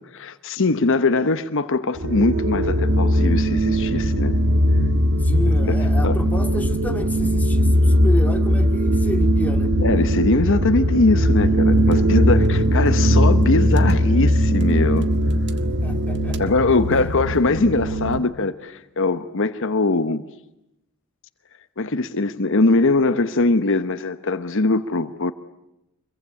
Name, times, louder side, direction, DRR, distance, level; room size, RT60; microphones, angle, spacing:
voice 1, 0.1-4.4 6.0-6.2 9.8-15.1 16.4-20.2 21.8-25.3, left 3 dB, 60° left, 1.0 m, -21 dB
sound 1, 2.0-18.2, equal, 55° right, 1.7 m, -19 dB
voice 2, 5.2-9.7 11.1-11.3 15.8-16.4 16.9-17.2, equal, 5° left, 2.4 m, -31 dB
25.5 x 22.5 x 9.8 m
head